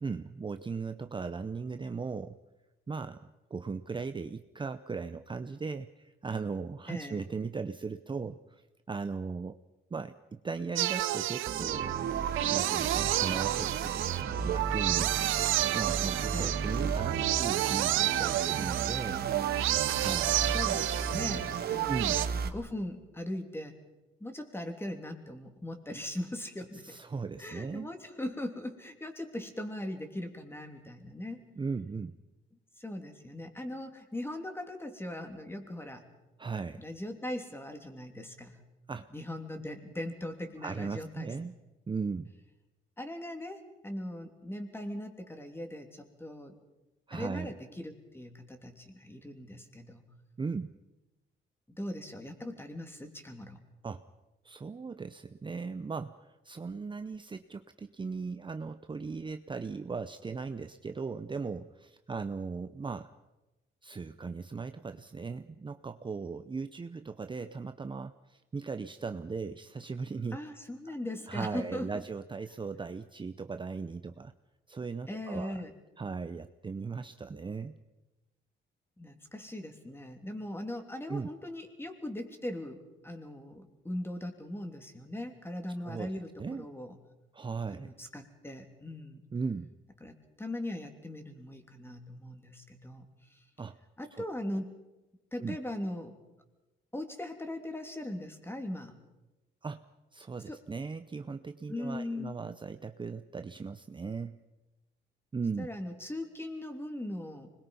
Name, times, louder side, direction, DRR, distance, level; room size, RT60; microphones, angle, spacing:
voice 1, 0.0-2.4 2.9-8.6 8.9-9.6 9.9-11.9 12.5-14.0 14.4-15.2 15.7-19.3 20.0-20.6 21.9-22.2 26.7-27.9 31.6-32.2 36.4-36.8 38.9-39.1 40.6-41.6 41.9-42.3 47.1-47.5 50.4-50.7 53.8-54.0 54.4-63.1 63.8-70.4 70.9-71.0 71.3-74.3 74.7-75.6 76.0-77.8 81.1-81.3 85.8-86.1 86.4-86.7 87.3-87.9 89.3-89.7 93.6-93.8 94.1-94.2 95.4-95.6 99.6-99.8 100.1-104.4 105.3-105.7, right 4 dB, 25° right, 9 dB, 0.7 m, -38 dB
voice 2, 6.9-7.2 16.3-16.5 20.5-22.0 22.4-23.8 24.2-27.0 27.4-31.4 32.8-36.0 36.8-38.6 39.1-41.5 43.0-46.5 47.1-50.0 51.8-53.6 70.3-72.0 75.1-75.7 79.0-86.9 87.7-89.2 90.0-93.4 94.0-94.7 95.3-96.2 96.9-98.9 100.5-100.6 101.7-102.4 105.6-107.5, left 1 dB, 10° left, 5 dB, 3.1 m, -40 dB
sound 1, 10.8-22.3, right 14 dB, 90° right, 0.8 m, -30 dB
sound 2, 11.5-22.5, right 6 dB, 50° right, 1.7 m, -35 dB
25.5 x 21.0 x 5.5 m, 1.1 s
cardioid pair, 90°, 20 cm